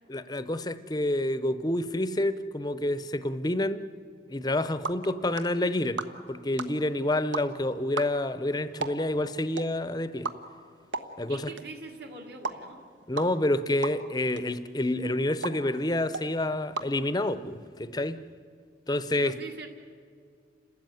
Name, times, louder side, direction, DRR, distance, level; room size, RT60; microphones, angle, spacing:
voice 1, 0.1-3.9 4.3-6.0 6.3-10.3 11.2-11.5 13.1-18.2 18.9-19.3, left 1 dB, 20° left, 13 dB, 0.7 m, -28 dB
sound 1, 4.4-17.7, right 3 dB, 75° right, 1.3 m, -40 dB
voice 2, 11.3-12.8 19.1-19.7, right 3 dB, 55° right, 2 dB, 2.0 m, -43 dB
30.0 x 13.5 x 9.1 m, 2.1 s
head